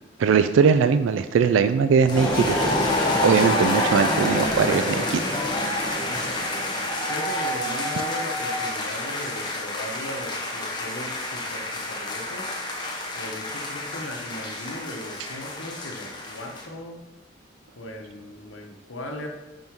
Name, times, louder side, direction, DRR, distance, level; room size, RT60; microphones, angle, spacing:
voice 1, 0.2-2.6 3.2-5.4, right 6 dB, 85° right, 10 dB, 0.3 m, -20 dB
sound 1, 2.1-16.7, left 1 dB, 25° left, 0.9 m, -29 dB
sound 2, 2.1-7.1, left 1 dB, 5° left, 1.1 m, -28 dB
voice 2, 6.1-6.4 7.1-12.6 13.2-17.0 17.8-19.3, left 1 dB, 90° left, 2 dB, 1.1 m, -37 dB
5.4 x 5.4 x 4.6 m, 1.1 s
head